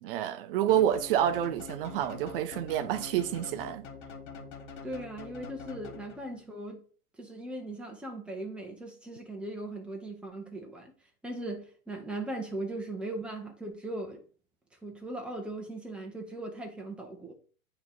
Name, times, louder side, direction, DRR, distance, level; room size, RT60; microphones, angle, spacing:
voice 1, 0.0-3.9, right 11 dB, 40° right, 0.6 m, -28 dB
sound 1, 0.7-6.4, left 5 dB, 50° left, 1.3 m, -45 dB
voice 2, 4.8-6.8 7.2-10.9 11.2-14.2 14.8-17.3, right 2 dB, ahead, 0.8 m, -39 dB
8.3 x 3.2 x 3.9 m
hypercardioid pair, 125°, 45 cm